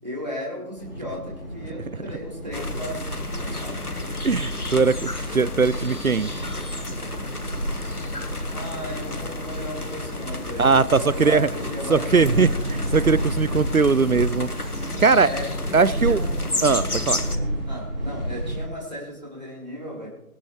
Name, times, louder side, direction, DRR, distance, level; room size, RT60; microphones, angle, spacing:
voice 1, 0.0-4.2 8.5-12.5 15.2-15.5 15.9-17.0 17.7-20.1, left 1 dB, 30° right, -4 dB, 3.9 m, -36 dB
sound 1, 0.8-18.7, equal, 40° left, 3.7 m, -32 dB
sound 2, 2.5-17.4, left 2 dB, 80° left, 1.7 m, -32 dB
voice 2, 4.2-6.3 10.6-11.5 11.9-14.5 15.0-15.3 15.7-16.2 16.6-17.2, right 4 dB, 70° right, 19 dB, 0.6 m, -20 dB
24.0 x 8.8 x 3.2 m, 0.90 s
figure-of-eight pair, 175°, 45 cm